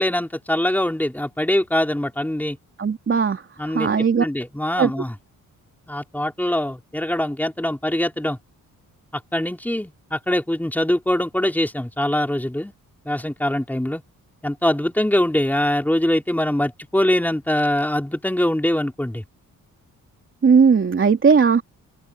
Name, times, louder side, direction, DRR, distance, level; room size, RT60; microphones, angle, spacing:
voice 1, 0.0-2.6 3.6-3.9 4.2-5.1 5.9-8.4 9.3-12.7 13.0-14.0 14.4-19.2, left 1 dB, 5° left, 3.9 m, -23 dB
voice 2, 2.8-4.3 4.8-4.9 20.4-21.6, right 5 dB, 40° right, 3.0 m, -17 dB
open air
cardioid pair, 115°, 33 cm